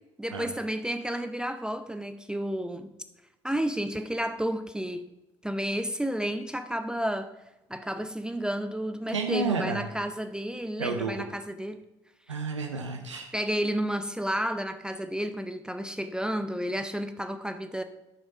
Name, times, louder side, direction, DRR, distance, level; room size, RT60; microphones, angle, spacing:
voice 1, 0.2-2.9 3.4-5.1 5.4-7.3 7.7-11.9 13.3-17.8, equal, 5° right, 9 dB, 0.6 m, -31 dB
voice 2, 9.1-9.9 10.8-11.3 12.3-13.3, right 4 dB, 90° right, 5 dB, 0.6 m, -31 dB
9.8 x 6.2 x 5.5 m, 0.94 s
figure-of-eight pair, 50°, 15 cm